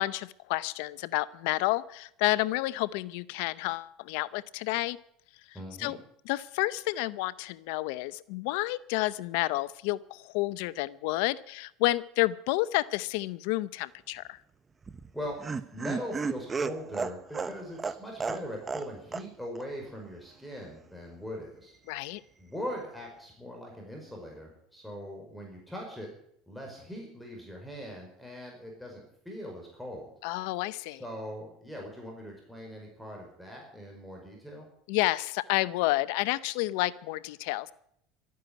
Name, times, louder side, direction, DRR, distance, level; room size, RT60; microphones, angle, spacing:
voice 1, 0.0-5.0 5.8-6.0 6.3-14.4 21.9-22.2 30.2-31.0 34.9-37.7, left 19 dB, 75° left, 18 dB, 0.7 m, -30 dB
voice 2, 5.5-6.0 15.1-15.4 15.7-21.7 22.4-26.1 26.5-30.1 31.0-34.7, equal, ahead, 0 dB, 5.1 m, -41 dB
Laughter, 14.8-18.9 19.1-19.2 19.5-19.6, right 5 dB, 20° right, 0.9 m, -33 dB
13.0 x 9.5 x 9.6 m, 0.71 s
supercardioid pair, 105°, 0 cm